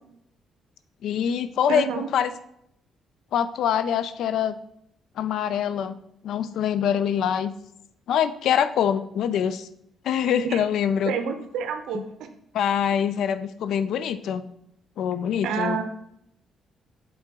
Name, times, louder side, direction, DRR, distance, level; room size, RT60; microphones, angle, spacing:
voice 1, 1.0-1.9 2.1-2.3 3.3-4.6 5.2-6.0 6.2-7.5 8.1-9.7 10.0-11.1 11.9-12.0 12.5-14.5 15.0-15.8, left 8 dB, 75° left, 13 dB, 0.4 m, -24 dB
voice 2, 1.7-2.1 10.4-10.6 11.1-12.0 15.4-15.8, right 7 dB, 85° right, 7 dB, 0.7 m, -28 dB
7.4 x 3.8 x 3.6 m, 0.74 s
cardioid pair, 90°, 0 cm